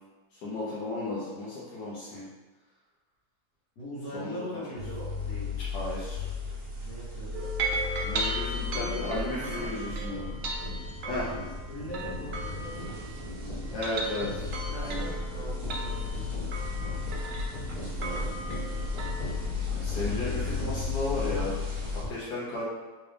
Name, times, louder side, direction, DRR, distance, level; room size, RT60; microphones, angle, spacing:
voice 1, 0.4-2.3 4.1-4.4 5.7-6.2 8.0-10.3 11.1-11.3 13.7-14.5 14.8-15.0 17.7-18.2 19.7-21.6 22.1-22.6, left 2 dB, 85° left, -8 dB, 1.4 m, -34 dB
voice 2, 3.8-5.5 6.8-7.5 8.6-9.7 11.7-13.5 14.7-16.1 17.8-18.3 20.0-20.8, equal, 65° left, -8 dB, 1.8 m, -41 dB
sound 1, 4.8-22.0, left 4 dB, 55° right, 1.4 m, -35 dB
sound 2, 7.3-13.3 13.7-19.4, right 3 dB, 85° right, 0.5 m, -37 dB
sound 3, 9.6-22.1, left 1 dB, 30° left, 0.5 m, -40 dB
3.9 x 2.5 x 3.3 m, 1.3 s
omnidirectional pair, 1.7 m